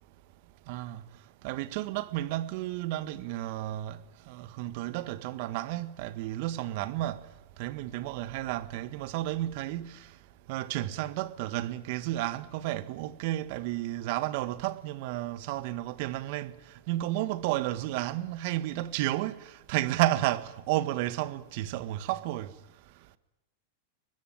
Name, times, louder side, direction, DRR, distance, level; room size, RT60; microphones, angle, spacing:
voice 1, 0.7-1.0 1.4-4.0 4.3-7.2 7.6-10.1 10.5-16.5 16.9-22.5, right 15 dB, 55° right, 1.6 m, -32 dB
24.5 x 21.0 x 8.9 m
hypercardioid pair, 115°, 0 cm